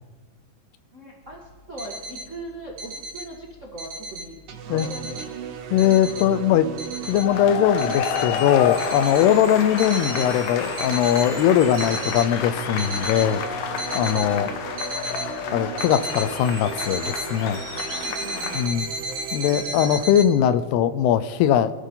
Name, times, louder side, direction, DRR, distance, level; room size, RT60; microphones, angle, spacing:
voice 1, 0.9-5.4 9.7-9.9 14.3-14.6 18.0-18.9 19.5-20.0, right 1 dB, 35° right, -2 dB, 1.2 m, -40 dB
sound 1, 1.6-2.3 2.7-3.3 3.6-4.3 4.8-5.3 5.8-6.3 6.8-7.3 7.8-8.3 8.8-9.2 9.8-10.3 10.8-11.3 11.6-12.3 12.8-13.3 13.8-14.3 14.8-15.3 15.8-16.3 16.8-17.3 17.8-20.3, right 1 dB, 85° right, 4.5 m, -33 dB
sound 2, 4.5-20.0, right 8 dB, 65° right, 2.3 m, -37 dB
voice 2, 5.7-6.7 7.1-13.4 14.0-14.5 15.5-17.6 18.5-18.9 19.3-21.7, left 10 dB, 85° left, 13 dB, 2.8 m, -20 dB
sound 3, 7.0-18.7, left 7 dB, 70° left, 2.5 m, -30 dB
25.5 x 13.5 x 3.9 m, 1.3 s
omnidirectional pair, 4.6 m